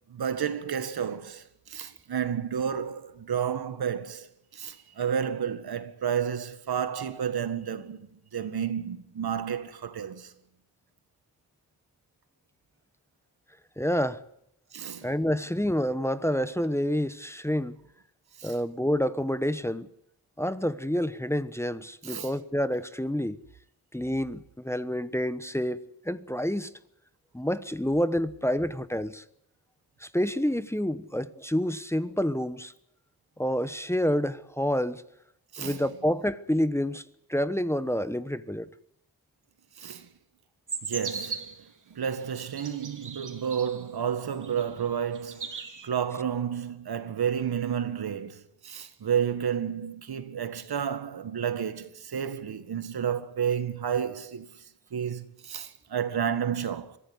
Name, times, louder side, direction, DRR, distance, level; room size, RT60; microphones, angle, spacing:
voice 1, 0.1-4.3 4.5-10.3 14.7-15.1 18.4-18.5 22.0-22.3 35.5-35.8 39.8-40.1 40.8-41.6 41.9-54.5 54.9-57.0, right 8 dB, 80° right, 1.9 m, -31 dB
voice 2, 13.8-14.2 15.0-17.8 18.4-19.9 20.4-23.4 23.9-26.7 27.3-29.2 30.0-32.7 33.4-35.0 35.6-37.0 37.3-38.7, equal, 5° left, 1.1 m, -28 dB
sound 1, 40.7-41.6 42.3-43.8 44.4-44.9 45.1-45.9, right 5 dB, 55° right, 3.2 m, -38 dB
23.5 x 15.0 x 9.6 m
wide cardioid pair, 85°, 37 cm